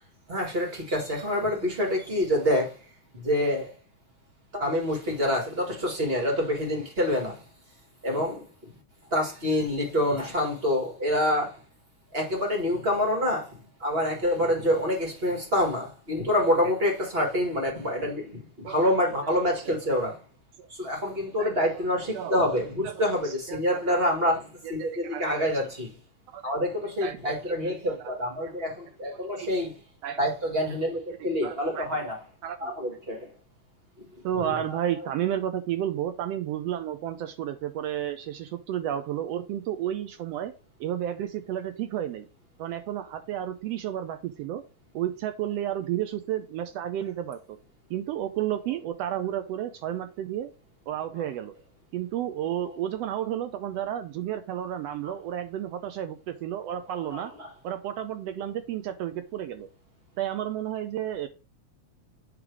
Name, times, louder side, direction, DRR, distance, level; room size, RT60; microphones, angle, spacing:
voice 1, 0.3-2.8 3.2-3.7 4.5-7.4 8.0-8.4 9.1-11.6 12.1-13.5 13.8-20.1 20.8-24.4 24.7-25.9 26.4-29.8 30.2-32.2 32.6-33.3 34.7-34.8 56.9-57.5, left 1 dB, 25° right, 1.7 m, -27 dB
voice 2, 22.8-24.2 24.6-25.5 26.3-26.5 27.0-27.2 27.4-28.1 28.4-28.5 29.1-29.5 30.0-30.2 30.7-30.8 31.2-31.9 32.4-32.7 34.2-40.5 40.8-42.3 42.6-44.6 44.9-47.6 47.9-50.5 50.9-51.5 51.9-57.3 57.6-59.7 60.2-61.3, right 11 dB, 80° right, 1.5 m, -32 dB
8.7 x 3.3 x 4.7 m
omnidirectional pair, 3.3 m